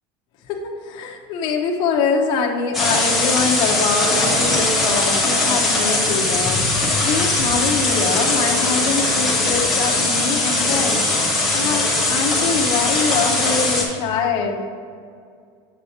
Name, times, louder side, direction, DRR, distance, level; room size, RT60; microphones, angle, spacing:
voice 1, 0.5-11.2 11.5-14.6, left 5 dB, 35° left, 1 dB, 0.7 m, -24 dB
sound 1, 2.7-13.8, left 2 dB, ahead, 1.0 m, -20 dB
7.8 x 7.5 x 2.8 m, 2.2 s
supercardioid pair, 180°, 14 cm